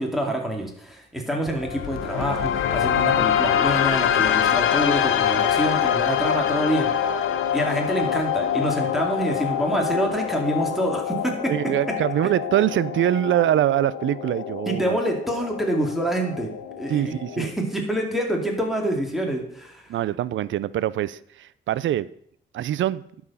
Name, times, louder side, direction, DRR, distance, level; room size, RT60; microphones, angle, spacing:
voice 1, 0.0-6.9 7.5-11.7 14.7-16.5 16.8-19.8, right 1 dB, ahead, 2.3 m, -26 dB
sound 1, 1.5-17.5, left 9 dB, 90° left, 0.8 m, -25 dB
voice 2, 11.5-15.0 16.9-17.5 19.9-22.1 22.5-23.0, right 12 dB, 70° right, 0.4 m, -24 dB
11.5 x 4.8 x 5.5 m
cardioid pair, 90°, 20 cm